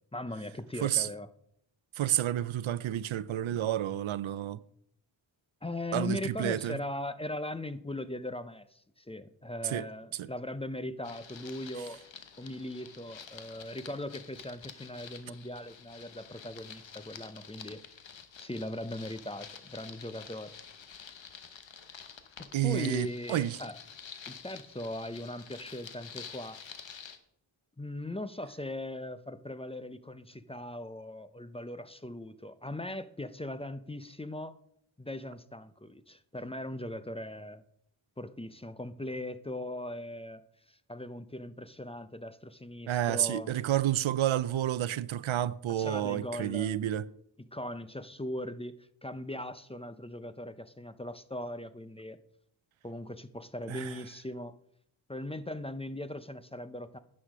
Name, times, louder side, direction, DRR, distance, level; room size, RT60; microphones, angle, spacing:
voice 1, 0.1-1.3 3.5-3.7 5.6-12.0 12.4-17.8 18.4-20.5 22.4-23.8 24.3-26.6 27.8-34.6 35.0-37.6 38.2-40.4 40.7-43.5 45.7-46.8 47.5-52.2 52.8-54.5 55.1-57.0, left 1 dB, 15° left, 0.5 m, -39 dB
voice 2, 2.0-4.6 5.9-6.8 9.6-9.9 10.2-10.3 22.5-23.6 42.9-47.0 53.7-53.9, right 12 dB, 80° right, 0.5 m, -30 dB
sound 1, 11.0-27.2, left 7 dB, 70° left, 1.1 m, -49 dB
10.0 x 6.4 x 6.0 m
wide cardioid pair, 80°, 46 cm